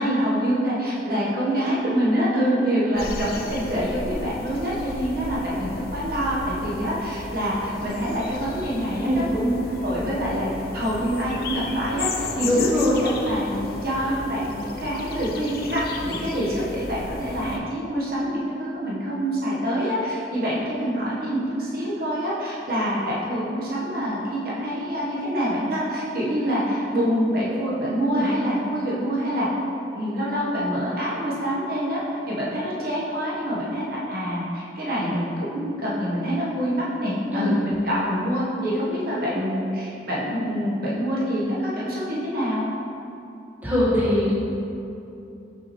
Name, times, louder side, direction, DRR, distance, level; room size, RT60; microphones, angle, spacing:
voice 1, 0.0-9.5 9.8-29.5 29.9-32.0 32.3-42.7, equal, 55° right, -6 dB, 1.0 m, -26 dB
sound 1, 3.0-17.6, left 3 dB, 55° left, 0.5 m, -34 dB
voice 2, 12.4-13.0 28.1-28.3 37.3-37.6 43.6-44.3, left 1 dB, 10° right, -8 dB, 1.2 m, -22 dB
6.2 x 5.6 x 3.0 m, 2.8 s
head